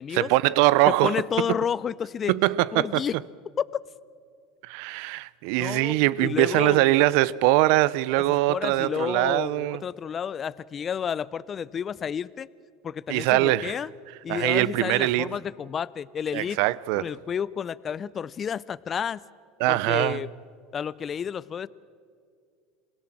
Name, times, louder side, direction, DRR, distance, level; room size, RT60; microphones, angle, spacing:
voice 1, 0.1-1.2 1.5-1.6 2.3-3.0 4.6-9.8 13.1-13.8 14.3-15.3 16.3-17.1 19.6-20.2, right 17 dB, 70° right, 0.6 m, -22 dB
voice 2, 1.0-2.3 2.7-3.2 5.6-6.9 8.5-12.5 12.8-13.9 14.2-16.6 17.0-19.2 19.7-20.3 20.7-21.7, left 7 dB, 35° left, 0.5 m, -31 dB
27.5 x 17.0 x 7.6 m
hypercardioid pair, 90°, 0 cm